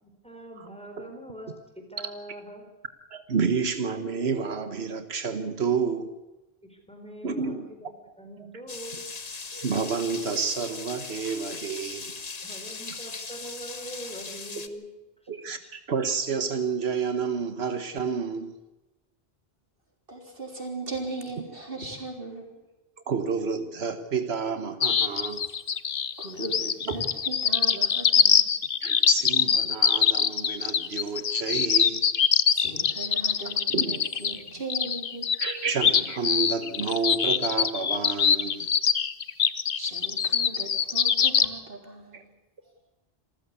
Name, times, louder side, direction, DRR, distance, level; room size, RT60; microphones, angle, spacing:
voice 1, 0.0-2.7 6.7-7.9 8.2-9.0 12.4-14.9 15.6-15.7, right 1 dB, 5° left, 4.4 m, -43 dB
voice 2, 3.1-6.2 7.2-7.7 9.5-12.1 15.3-18.5 23.1-25.5 26.9-27.0 28.8-32.0 33.7-34.0 35.4-38.7 42.1-42.2, right 5 dB, 85° right, 1.5 m, -30 dB
sound 1, 8.7-14.7, left 4 dB, 40° left, 1.2 m, -39 dB
voice 3, 20.1-22.5 25.3-25.5 26.2-28.5 32.5-35.3 39.7-42.3, right 2 dB, 65° right, 4.2 m, -38 dB
sound 2, 24.8-41.5, left 7 dB, 60° left, 1.1 m, -23 dB
26.5 x 14.5 x 8.3 m
omnidirectional pair, 1.0 m